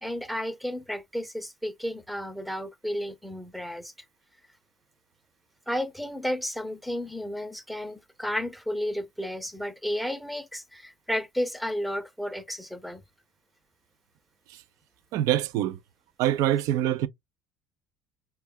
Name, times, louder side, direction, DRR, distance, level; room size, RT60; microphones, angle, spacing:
voice 1, 0.0-3.9 5.7-13.0, equal, ahead, 0.6 m, -32 dB
voice 2, 15.1-15.8 16.2-17.1, right 12 dB, 65° right, 0.4 m, -25 dB
4.6 x 2.2 x 2.2 m
hypercardioid pair, 65°, 6 cm